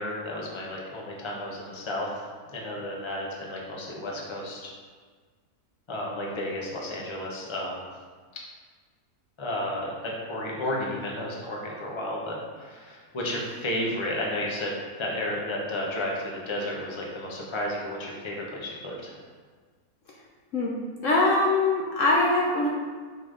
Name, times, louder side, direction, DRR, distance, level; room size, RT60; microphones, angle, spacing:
voice 1, 0.0-4.7 5.9-7.9 9.4-19.2, left 1 dB, 20° left, -3 dB, 1.0 m, -32 dB
voice 2, 21.0-22.7, left 2 dB, 60° left, -3 dB, 1.1 m, -22 dB
5.8 x 5.7 x 3.9 m, 1.5 s
omnidirectional pair, 1.7 m